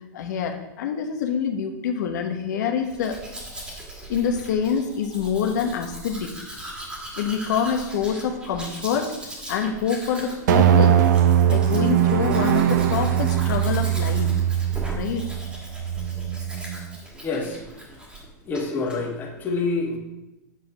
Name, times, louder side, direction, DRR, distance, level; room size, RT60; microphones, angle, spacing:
voice 1, 0.1-3.2 4.1-6.3 7.2-9.1 9.5-11.0 11.5-14.3 14.9-15.3, left 7 dB, 70° left, 4 dB, 1.2 m, -26 dB
Domestic sounds home sounds, 2.8-18.3 18.5-19.0, right 2 dB, 10° right, 1.8 m, -39 dB
sound 1, 10.5-17.0, right 10 dB, 70° right, 0.8 m, -21 dB
voice 2, 17.2-17.6 18.5-20.0, left 3 dB, 20° left, -1 dB, 1.7 m, -27 dB
8.3 x 5.4 x 6.1 m, 0.98 s
supercardioid pair, 160°, 10 cm